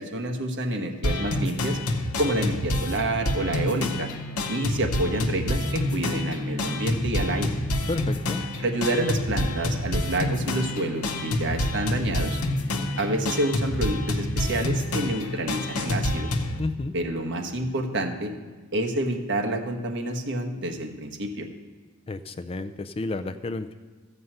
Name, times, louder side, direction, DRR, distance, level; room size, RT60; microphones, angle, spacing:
voice 1, 0.0-1.8 2.2-4.1 4.5-7.5 8.6-12.4 13.0-16.3 16.9-18.3 18.7-21.5, right 1 dB, 55° right, 3 dB, 1.3 m, -28 dB
sound 1, 1.0-16.6, left 1 dB, 80° left, 1.0 m, -28 dB
voice 2, 7.9-8.4 16.6-16.9 22.1-23.8, left 2 dB, 25° left, 10 dB, 0.4 m, -31 dB
14.0 x 5.5 x 7.8 m, 1.4 s
head